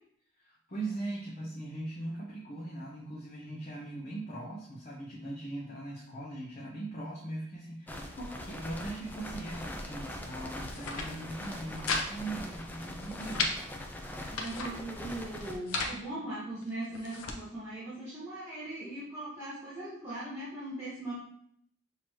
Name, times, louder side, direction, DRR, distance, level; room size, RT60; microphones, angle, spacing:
voice 1, 0.4-13.6, right 2 dB, 30° left, -5 dB, 0.7 m, -40 dB
sound 1, 7.9-15.6, left 1 dB, 10° left, 0.3 m, -42 dB
sound 2, 10.7-11.1 11.4-12.1 12.3-12.4 12.8-13.5 14.1-14.7 15.4-16.0 16.6-17.4, left 3 dB, 80° left, 0.6 m, -35 dB
voice 2, 14.3-21.1, right 1 dB, 10° right, -11 dB, 1.1 m, -39 dB
6.1 x 2.8 x 3.1 m, 0.68 s
head